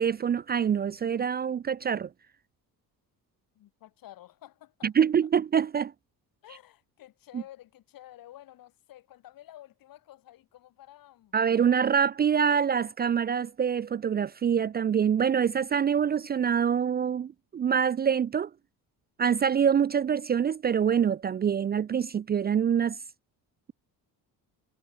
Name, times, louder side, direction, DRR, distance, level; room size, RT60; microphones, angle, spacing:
voice 1, 0.0-2.1 4.8-5.9 7.3-7.4 11.3-18.5 19.2-23.0, right 7 dB, 25° right, 0.5 m, -25 dB
voice 2, 3.6-4.9 6.4-11.4, left 14 dB, 65° left, 6.9 m, -51 dB
cardioid pair, 170°, 37 cm